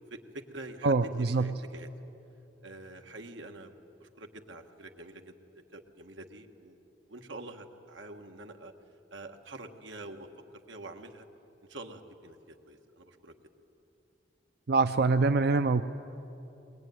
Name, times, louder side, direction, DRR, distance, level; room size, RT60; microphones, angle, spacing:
voice 1, 0.1-1.9 2.6-3.7 4.0-5.3 5.7-6.8 7.1-8.7 9.1-10.3 10.7-11.3 11.7-13.3, right 2 dB, 90° right, 5 dB, 1.6 m, -46 dB
voice 2, 0.8-1.5 14.7-15.8, right 3 dB, 60° right, 9 dB, 0.5 m, -24 dB
21.5 x 21.0 x 9.4 m, 3.0 s
head